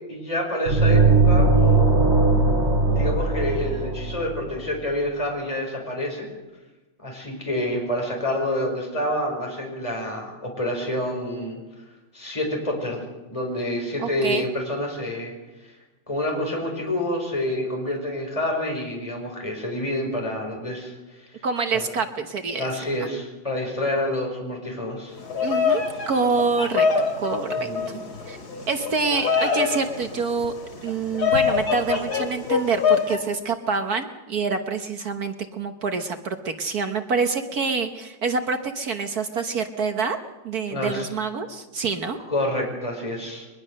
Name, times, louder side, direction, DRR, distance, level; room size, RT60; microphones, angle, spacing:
voice 1, 0.1-1.5 2.9-6.3 7.0-11.6 12.1-13.0 13.3-15.3 15.6-15.7 16.1-21.3 22.6-25.2 27.6-28.0 40.7-41.1 42.3-43.5, left 1 dB, 15° left, 0 dB, 5.1 m, -28 dB
sound 1, 0.7-4.5, right 3 dB, 35° right, 4.2 m, -19 dB
voice 2, 14.0-14.5 21.4-22.7 23.0-23.1 25.4-26.9 27.2-27.7 28.3-28.4 28.7-30.5 30.8-40.2 40.4-42.2, right 4 dB, 60° right, 7 dB, 1.6 m, -26 dB
Bird vocalization bird call bird song, 25.2-33.2, left 6 dB, 60° left, 3.2 m, -25 dB
22.5 x 21.0 x 6.6 m, 1.1 s
omnidirectional pair, 2.0 m